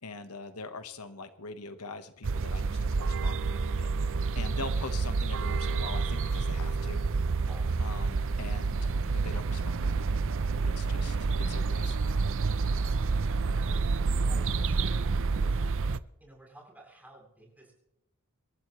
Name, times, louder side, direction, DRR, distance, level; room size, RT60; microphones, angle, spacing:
voice 1, 0.0-3.9 4.3-7.0 7.8-10.2 10.6-11.2 11.5-12.2, left 3 dB, 90° left, 9 dB, 1.3 m, -43 dB
sound 1, 2.2-16.0, right 4 dB, 65° right, 0.6 m, -29 dB
voice 2, 7.4-7.8 13.1-15.6 16.2-17.7, right 2 dB, 5° right, -2 dB, 7.8 m, -54 dB
27.0 x 13.5 x 3.2 m, 0.83 s
head